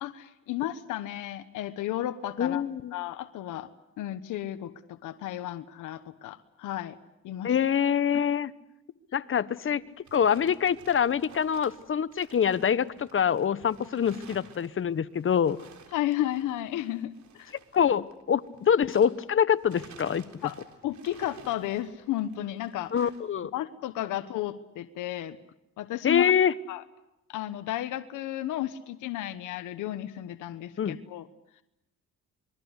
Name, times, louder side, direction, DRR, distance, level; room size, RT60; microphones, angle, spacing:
voice 1, 0.0-2.6 2.9-3.7 4.0-7.0 7.2-7.5 15.9-17.5 20.4-20.6 20.8-23.1 23.5-25.4 25.8-26.3 26.7-26.8 27.3-31.3, left 13 dB, 90° left, 11 dB, 1.2 m, -33 dB
voice 2, 2.4-2.9 7.4-8.5 9.1-9.8 10.1-15.6 17.7-20.5 22.9-23.5 26.0-26.5 30.8-31.0, left 8 dB, 45° left, 15 dB, 1.1 m, -25 dB
sound 1, 9.7-19.3 19.6-23.3, right 6 dB, 70° right, 3.8 m, -54 dB
27.5 x 22.0 x 8.1 m, 0.86 s
cardioid pair, 90°, 30 cm